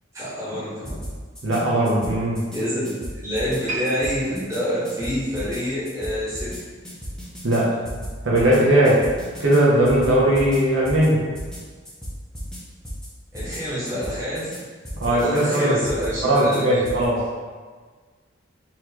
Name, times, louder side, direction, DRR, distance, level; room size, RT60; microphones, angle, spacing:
voice 1, 0.1-1.0 2.5-2.8 3.1-6.5 13.3-14.5 15.1-16.8, equal, 15° right, -10 dB, 1.3 m, -27 dB
sound 1, 0.8-1.6 1.9-2.6 2.8-3.6 3.8-4.6 4.8-5.6 5.9-6.6 6.8-7.6 7.8-8.6 8.8-9.6 9.8-10.6 10.8-11.1 11.3-11.6 11.8-12.6 12.8-13.1 13.3-13.6 13.9-14.6 14.8-15.6 15.8-16.6 16.8-17.1, equal, 5° left, 0.7 m, -34 dB
voice 2, 1.4-2.4 7.4-7.7 8.2-9.0 9.4-11.2 15.0-15.8 16.2-17.2, right 1 dB, 75° right, -6 dB, 0.9 m, -19 dB
sound 2, 3.7-7.0 7.3-7.5 8.2-8.3, right 2 dB, 35° right, 0.9 m, -36 dB
4.1 x 3.1 x 2.9 m, 1.5 s
head